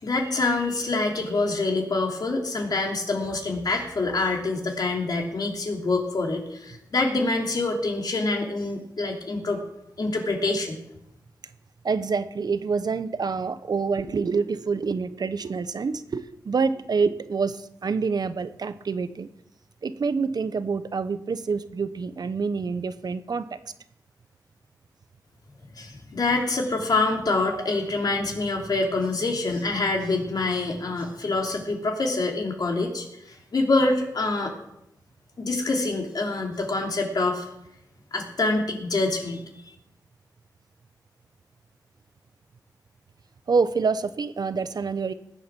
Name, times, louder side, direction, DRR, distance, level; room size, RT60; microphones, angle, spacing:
voice 1, 0.0-9.6 10.0-10.8 25.8-34.5 35.4-37.5 38.1-39.4, left 3 dB, 60° left, 1 dB, 3.2 m, -26 dB
voice 2, 11.8-19.3 19.8-23.6 27.6-27.7 43.5-45.1, right 5 dB, 65° right, 13 dB, 0.9 m, -27 dB
20.0 x 8.4 x 6.1 m, 0.82 s
wide cardioid pair, 90°, 7 cm